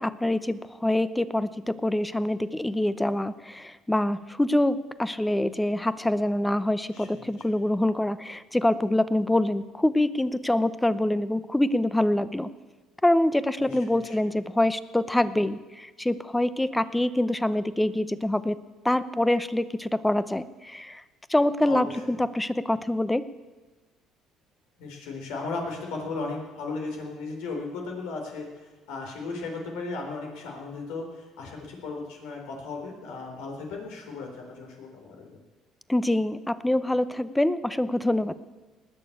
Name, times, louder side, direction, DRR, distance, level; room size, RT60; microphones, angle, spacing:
voice 1, 0.0-12.5 13.0-18.6 18.8-21.0 21.3-23.2 35.9-38.4, left 1 dB, 10° left, 15 dB, 0.7 m, -25 dB
voice 2, 6.9-7.2 13.6-14.2 21.6-21.9 24.8-35.4, left 3 dB, 85° left, 1 dB, 4.0 m, -36 dB
19.5 x 6.8 x 8.6 m, 1.3 s
cardioid pair, 100°, 0 cm